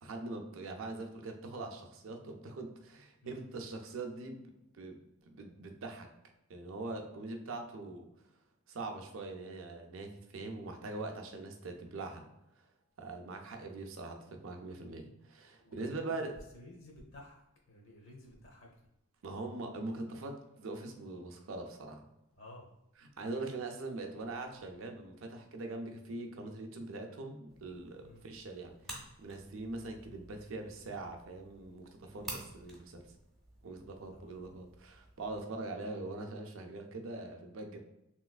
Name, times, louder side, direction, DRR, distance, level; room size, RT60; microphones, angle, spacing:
voice 1, 0.0-4.4 4.7-5.0 5.3-6.1 6.5-8.1 8.7-12.3 12.6-12.7 13.0-16.4 19.2-22.0 23.0-33.1 33.6-37.8, right 2 dB, 65° right, 4 dB, 0.5 m, -42 dB
voice 2, 15.6-17.4 17.7-18.7 22.4-22.7 28.0-28.2 34.1-34.6, left 1 dB, 60° left, -1 dB, 0.8 m, -53 dB
sound 1, 27.5-35.4, right 1 dB, ahead, 0.6 m, -51 dB
3.2 x 3.0 x 2.3 m, 0.87 s
head